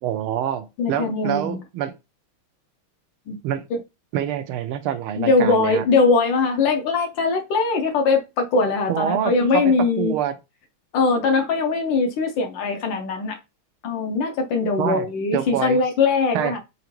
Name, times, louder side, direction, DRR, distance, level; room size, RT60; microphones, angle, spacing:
voice 1, 0.0-1.9 3.4-3.6 4.1-5.8 8.9-10.4 14.8-15.8 16.3-16.6, right 10 dB, 85° right, 1.5 m, -26 dB
voice 2, 0.8-1.6 3.3-3.4 3.7-3.8 5.2-10.2 10.9-13.4 13.8-16.6, left 4 dB, 70° left, 1.3 m, -21 dB
4.9 x 2.8 x 3.1 m
omnidirectional pair, 2.3 m